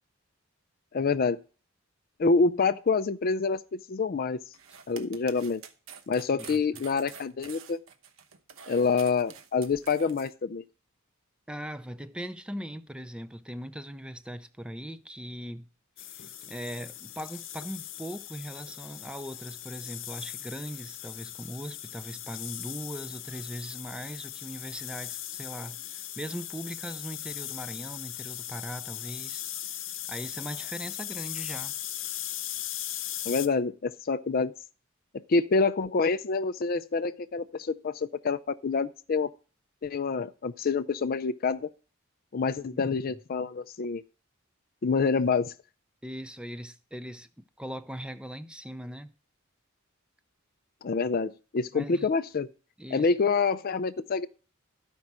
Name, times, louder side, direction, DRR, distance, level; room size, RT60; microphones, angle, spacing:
voice 1, 0.9-1.4 2.2-4.4 4.9-5.6 6.1-7.8 8.7-10.6 33.3-34.5 35.3-39.3 39.8-41.7 42.3-44.0 44.8-45.5 50.8-52.5 52.9-54.3, left 4 dB, 45° left, 0.4 m, -27 dB
sound 1, 4.5-10.3, right 7 dB, 80° right, 1.0 m, -48 dB
voice 2, 11.5-15.7 16.0-29.4 29.8-29.9 30.1-31.7 32.9-33.0 42.7-43.2 46.0-47.3 47.6-49.1 51.7-52.1 52.8-53.1, equal, 5° right, 0.5 m, -40 dB
sound 2, 16.0-33.5, left 12 dB, 65° left, 0.8 m, -39 dB
13.0 x 5.3 x 6.0 m
head